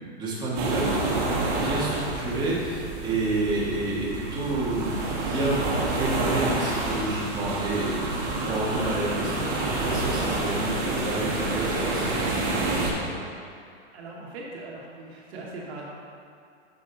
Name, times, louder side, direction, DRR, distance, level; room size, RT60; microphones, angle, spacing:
voice 1, 0.2-1.2 1.6-5.6 5.9-13.0, right 2 dB, 10° right, -7 dB, 1.8 m, -29 dB
sound 1, 0.6-12.9, right 2 dB, 40° right, 1.7 m, -28 dB
voice 2, 13.9-15.8, right 2 dB, 65° right, -4 dB, 1.7 m, -40 dB
8.1 x 6.9 x 4.1 m, 2.4 s
supercardioid pair, 155°, 35 cm